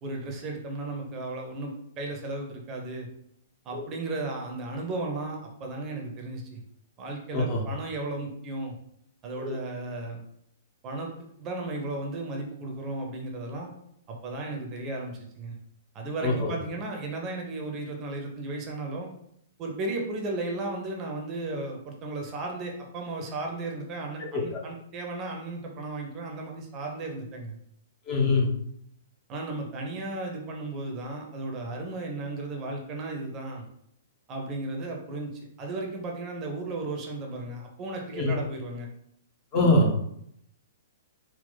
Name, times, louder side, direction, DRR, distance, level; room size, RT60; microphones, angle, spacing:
voice 1, 0.0-3.1 3.6-6.6 7.0-8.7 9.2-10.2 10.8-11.1 11.4-13.7 14.1-15.5 15.9-19.1 19.6-27.6 29.3-33.6 34.3-35.3 35.6-38.9, right 2 dB, 25° right, 1 dB, 0.7 m, -35 dB
voice 2, 7.3-7.6 9.4-9.6 16.2-16.5 24.3-24.6 28.1-28.5 38.1-38.3 39.5-39.9, left 2 dB, 30° left, -1 dB, 0.9 m, -24 dB
3.9 x 2.3 x 3.9 m, 0.72 s
figure-of-eight pair, 110°, 0 cm